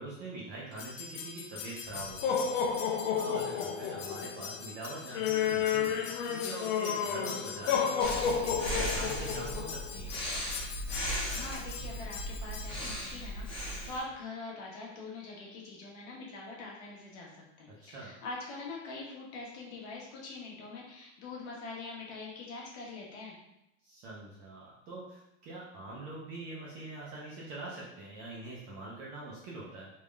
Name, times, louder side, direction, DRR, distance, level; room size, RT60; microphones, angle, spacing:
voice 1, 0.0-2.6 3.1-10.2 17.7-18.1 23.8-29.9, right 2 dB, 25° right, -5 dB, 0.3 m, -44 dB
sound 1, 0.8-12.7, left 7 dB, 80° left, 0.6 m, -33 dB
Breathing, 8.0-14.0, equal, 15° left, 0.7 m, -37 dB
voice 2, 11.1-23.4, left 3 dB, 60° left, -3 dB, 1.2 m, -44 dB
3.5 x 2.4 x 3.2 m, 0.86 s
supercardioid pair, 160°, 37 cm